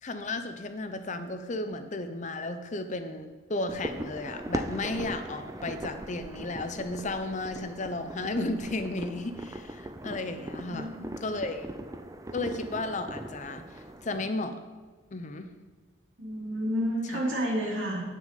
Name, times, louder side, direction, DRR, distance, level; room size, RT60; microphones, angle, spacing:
voice 1, 0.0-10.9 11.2-11.7 12.3-14.6 15.1-15.5 17.1-17.2, left 2 dB, 35° left, 9 dB, 0.6 m, -34 dB
sound 1, 3.7-14.2, right 1 dB, 15° right, 0.4 m, -40 dB
voice 2, 10.4-11.1 16.2-18.0, equal, 80° right, -4 dB, 3.1 m, -31 dB
9.2 x 6.3 x 5.2 m, 1.4 s
head